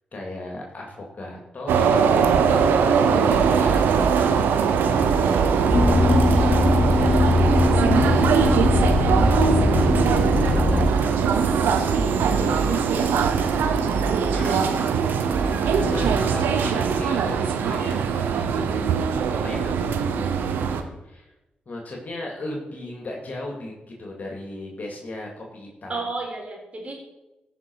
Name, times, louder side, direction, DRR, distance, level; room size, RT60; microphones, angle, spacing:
voice 1, 0.1-2.1 2.5-4.1 4.8-9.9 10.4-13.7 14.3-14.7 15.8-18.8 19.4-19.7 21.0-21.3 21.7-26.0, left 2 dB, 50° left, -1 dB, 2.6 m, -37 dB
sound 1, 1.7-20.8, right 6 dB, 85° right, 0.8 m, -21 dB
sound 2, 3.3-17.0, right 4 dB, 70° right, 1.5 m, -31 dB
sound 3, 5.7-10.9, left 3 dB, 30° left, 0.3 m, -21 dB
voice 2, 25.9-26.9, right 3 dB, 40° right, 0 dB, 4.0 m, -33 dB
15.5 x 5.9 x 4.7 m, 0.99 s
supercardioid pair, 45°, 3 cm